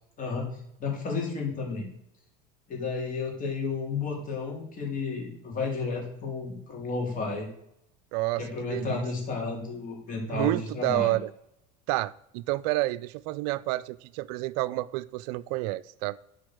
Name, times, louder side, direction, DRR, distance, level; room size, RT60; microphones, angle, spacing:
voice 1, 0.8-1.9 2.7-7.5 8.4-11.1, left 4 dB, 40° left, 3.8 m, -32 dB
voice 2, 8.1-9.0 10.3-11.3 11.9-16.2, right 18 dB, 70° right, 0.4 m, -29 dB
10.5 x 5.3 x 6.3 m
supercardioid pair, 95°, 21 cm